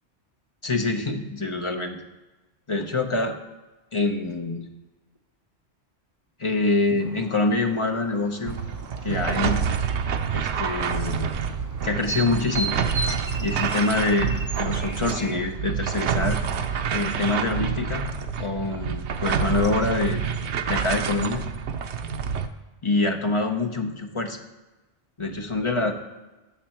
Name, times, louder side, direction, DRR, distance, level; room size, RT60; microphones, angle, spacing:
voice 1, 0.6-2.0 2.7-3.3 3.9-4.6 6.4-8.6 9.0-9.6 10.3-11.3 11.8-12.7 13.4-14.3 14.6-16.4 16.9-18.1 18.4-20.2 20.7-21.4 22.8-24.4 25.2-25.9, left 3 dB, 30° left, 3 dB, 1.0 m, -25 dB
sound 1, 7.0-15.4, right 2 dB, 20° right, 0.7 m, -37 dB
sound 2, 8.5-22.5, right 6 dB, 80° right, 1.0 m, -27 dB
14.5 x 5.9 x 4.5 m, 1.1 s
omnidirectional pair, 1.1 m